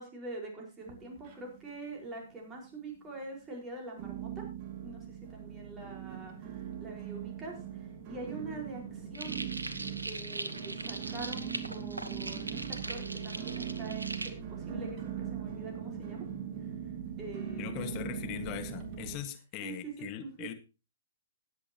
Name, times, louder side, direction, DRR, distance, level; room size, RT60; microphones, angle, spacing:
voice 1, 0.0-4.5 4.8-9.4 10.0-16.2 17.2-18.0 19.6-20.5, right 3 dB, 20° right, 0 dB, 4.8 m, -44 dB
sound 1, 0.8-1.8 2.0-2.7 3.2-3.3 4.0-19.2, right 8 dB, 35° right, 2.3 m, -40 dB
sound 2, 9.1-14.3, right 2 dB, 90° right, 1.1 m, -40 dB
voice 2, 17.6-20.5, left 12 dB, 35° left, 8 dB, 1.7 m, -40 dB
19.5 x 8.2 x 3.0 m, 0.30 s
figure-of-eight pair, 120°, 0 cm